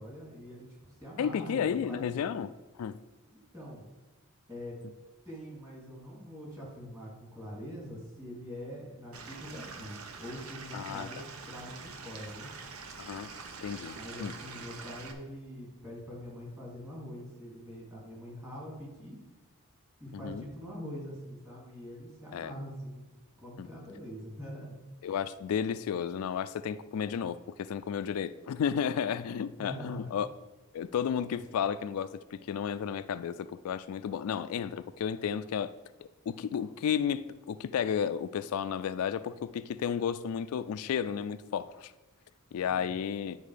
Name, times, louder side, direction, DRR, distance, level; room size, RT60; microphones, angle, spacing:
voice 1, 0.0-2.1 3.3-3.8 4.5-4.8 5.2-12.5 13.9-19.3 20.0-23.1 23.4-24.7 29.6-30.1 42.6-42.9, equal, 15° right, -5 dB, 2.9 m, -44 dB
voice 2, 1.2-2.5 2.8-3.0 10.7-11.1 13.0-13.3 13.6-14.3 20.1-20.5 22.3-22.5 23.6-23.7 25.0-30.3 30.7-35.7 36.0-41.9 42.5-43.4, left 8 dB, 75° left, 13 dB, 0.3 m, -33 dB
Stream / Liquid, 9.1-15.1, right 4 dB, 75° right, 0.9 m, -45 dB
10.0 x 4.8 x 5.0 m, 1.1 s
head